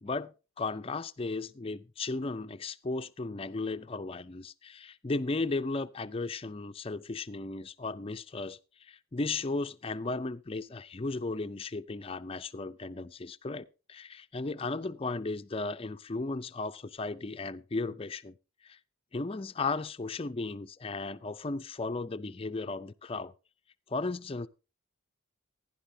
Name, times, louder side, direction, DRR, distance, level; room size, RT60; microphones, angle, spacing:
voice 1, 0.0-18.3 18.6-18.8 19.1-23.3 23.9-24.5, left 3 dB, 25° left, 0.4 m, -35 dB
15.0 x 10.5 x 2.7 m
head